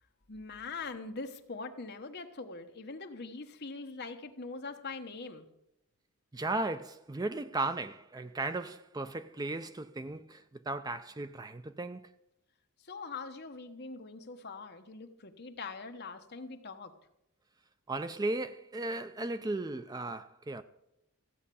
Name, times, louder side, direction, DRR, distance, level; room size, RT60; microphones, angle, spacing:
voice 1, 0.3-5.5 12.9-16.9, left 4 dB, 50° left, 1.1 m, -42 dB
voice 2, 6.3-12.1 17.9-20.6, right 2 dB, 15° right, 0.4 m, -36 dB
15.0 x 8.7 x 6.9 m
head